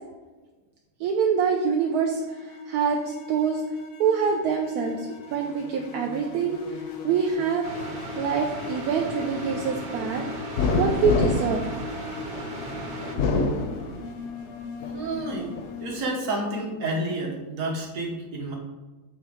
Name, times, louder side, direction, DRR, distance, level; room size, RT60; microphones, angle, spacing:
sound 1, 1.0-15.8, left 3 dB, 85° left, 1.4 m, -39 dB
voice 1, 1.0-3.6 4.0-7.9 8.2-10.2 10.8-11.6, right 6 dB, 80° right, 1 dB, 1.1 m, -25 dB
sound 2, 7.6-13.2, right 1 dB, 40° right, 1.1 m, -37 dB
sound 3, 10.6-12.5 13.0-14.4 14.8-15.7, left 3 dB, 60° left, 0.8 m, -26 dB
voice 2, 14.9-15.5 15.8-18.6, right 2 dB, 60° right, -1 dB, 1.6 m, -30 dB
7.5 x 3.0 x 4.9 m, 1.2 s
omnidirectional pair, 1.6 m